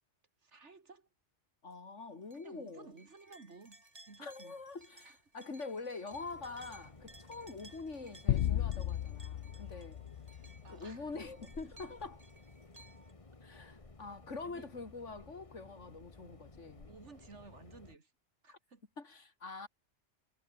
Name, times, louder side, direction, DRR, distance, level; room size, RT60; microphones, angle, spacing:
voice 1, 0.4-1.1 2.4-4.6 5.0-5.2 7.6-7.9 10.6-11.2 14.4-14.7 15.2-15.3 16.9-18.1 18.4-18.8, right 4 dB, 75° right, 2.8 m, -55 dB
voice 2, 1.6-2.9 4.2-10.0 10.7-12.2 13.4-16.9 19.0-19.7, left 3 dB, 85° left, 3.1 m, -45 dB
sound 1, 2.3-13.1, right 2 dB, 30° right, 3.4 m, -60 dB
sound 2, 6.1-18.0, left 3 dB, 30° left, 1.6 m, -56 dB
sound 3, 8.3-10.9, left 11 dB, 65° left, 0.9 m, -35 dB
omnidirectional pair, 1.2 m